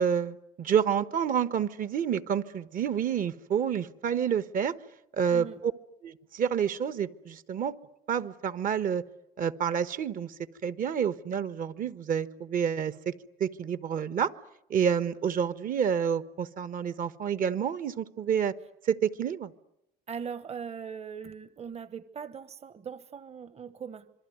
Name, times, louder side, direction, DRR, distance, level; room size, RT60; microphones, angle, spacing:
voice 1, 0.0-4.7 5.1-5.7 6.0-7.7 8.1-9.0 9.4-10.3 10.6-13.1 13.4-14.3 14.7-18.5 18.8-19.5, right 8 dB, 55° right, 13 dB, 1.3 m, -28 dB
voice 2, 5.3-5.6 20.1-24.1, right 6 dB, 40° right, 14 dB, 1.2 m, -40 dB
26.5 x 22.5 x 9.5 m, 0.81 s
cardioid pair, 110°, 17 cm